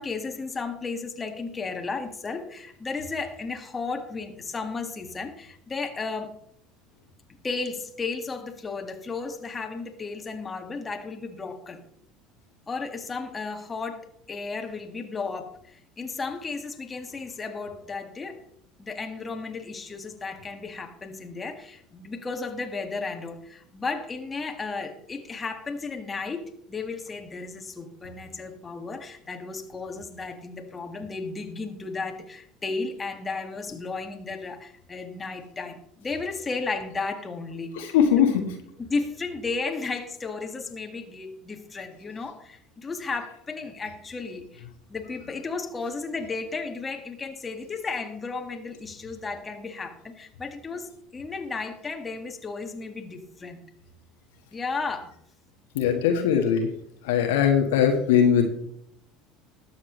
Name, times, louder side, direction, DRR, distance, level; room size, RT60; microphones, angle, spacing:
voice 1, 0.0-6.3 7.4-11.8 12.7-18.4 18.8-37.9 38.9-44.6 44.9-53.7 54.5-55.1, left 4 dB, 25° left, 4 dB, 1.9 m, -34 dB
voice 2, 37.7-38.5 55.7-56.7 57.0-58.5, left 8 dB, 70° left, 4 dB, 1.6 m, -21 dB
20.5 x 7.4 x 3.3 m, 0.71 s
figure-of-eight pair, 65°, 0 cm